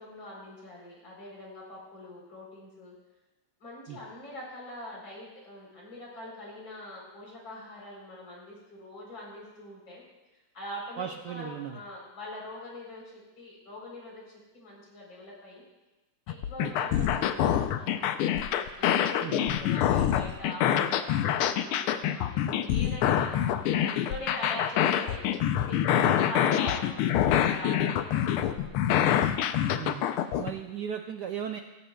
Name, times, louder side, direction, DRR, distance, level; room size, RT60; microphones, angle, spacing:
voice 1, 0.0-2.9 3.6-10.0 10.5-15.6 16.3-18.2 18.8-27.1 27.4-28.9, left 1 dB, 60° left, -3 dB, 4.7 m, -43 dB
voice 2, 11.0-11.8 16.6-16.7 19.2-19.5 26.0-26.2 29.8-30.1 30.4-31.6, right 9 dB, 70° right, 4 dB, 1.0 m, -36 dB
sound 1, 16.3-30.5, left 10 dB, 90° left, 1.6 m, -26 dB
16.5 x 15.5 x 2.3 m, 1.1 s
omnidirectional pair, 2.3 m